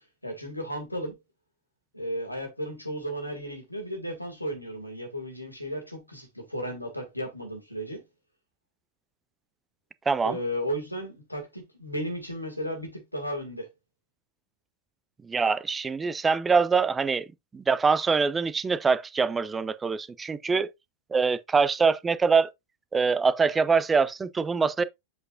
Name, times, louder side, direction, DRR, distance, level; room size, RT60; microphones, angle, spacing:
voice 1, 0.2-1.2 1.9-8.0 10.2-13.7, equal, 85° left, 2.2 m, -34 dB
voice 2, 10.1-10.4 15.2-17.2 17.5-20.7 21.1-22.5 22.9-24.8, right 5 dB, 15° right, 0.5 m, -24 dB
8.0 x 4.8 x 2.6 m
figure-of-eight pair, 90°, 0 cm